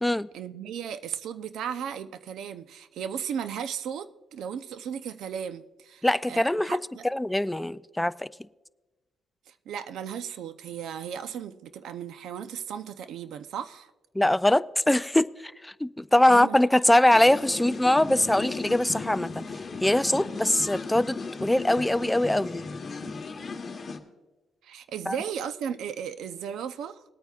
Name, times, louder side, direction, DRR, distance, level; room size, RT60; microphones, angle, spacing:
voice 1, 0.3-7.1 9.5-13.9 16.3-16.6 20.4-20.5 24.6-27.0, right 8 dB, 80° right, 0.6 m, -36 dB
voice 2, 6.0-6.8 7.0-8.3 14.2-19.4 19.8-22.6 25.1-25.2, left 1 dB, 10° left, 0.3 m, -22 dB
sound 1, 17.1-24.0, left 4 dB, 35° left, 1.1 m, -36 dB
20.5 x 9.0 x 2.4 m
cardioid pair, 90°, 0 cm